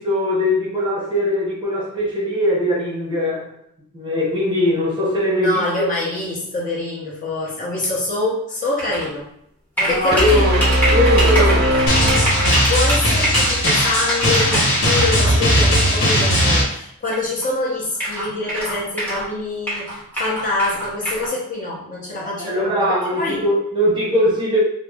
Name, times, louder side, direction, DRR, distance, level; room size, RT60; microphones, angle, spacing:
voice 1, 0.0-3.5 3.9-5.9 9.8-11.7 22.2-24.6, left 1 dB, 20° right, -5 dB, 0.8 m, -20 dB
voice 2, 5.4-9.3 9.8-10.5 11.2-11.8 12.7-23.4, left 2 dB, 35° left, -5 dB, 0.8 m, -25 dB
sound 1, 8.8-9.1 9.8-15.3 16.1-16.2 17.1-17.2 17.4-17.5 17.9-19.3 19.7-21.3, equal, 10° left, 0.9 m, -24 dB
sound 2, 10.1-13.0, right 1 dB, 45° right, 0.4 m, -19 dB
Drum, 11.9-16.6, equal, 55° left, 1.1 m, -17 dB
3.0 x 2.0 x 3.4 m, 0.73 s
head